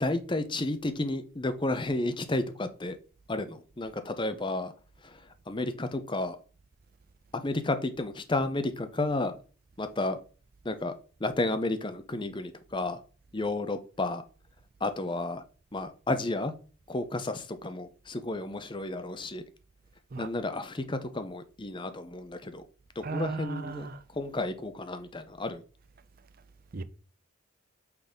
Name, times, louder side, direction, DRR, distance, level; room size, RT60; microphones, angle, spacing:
voice 1, 0.0-3.0 3.3-4.7 5.0-5.1 5.5-6.4 7.3-9.3 9.8-10.2 10.6-10.9 11.2-13.0 13.3-14.2 14.8-15.4 15.7-16.5 16.9-19.4 20.2-22.6 23.0-23.9 24.2-25.6, left 2 dB, 25° left, 0.6 m, -32 dB
voice 2, 23.0-24.0 26.7-26.8, right 3 dB, 45° right, 0.5 m, -35 dB
5.7 x 4.1 x 5.1 m
head